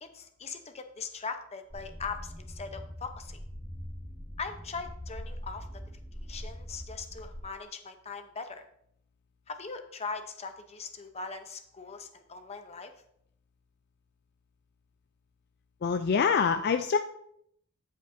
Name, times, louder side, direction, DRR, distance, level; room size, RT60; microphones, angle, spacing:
voice 1, 0.0-3.4 4.4-5.8 6.3-8.7 9.5-12.9, left 4 dB, 30° left, 7 dB, 0.7 m, -40 dB
sound 1, 1.7-7.4, equal, 15° left, 1.5 m, -42 dB
voice 2, 15.8-17.0, left 6 dB, 50° left, 8 dB, 0.4 m, -25 dB
14.5 x 5.2 x 2.6 m, 0.70 s
head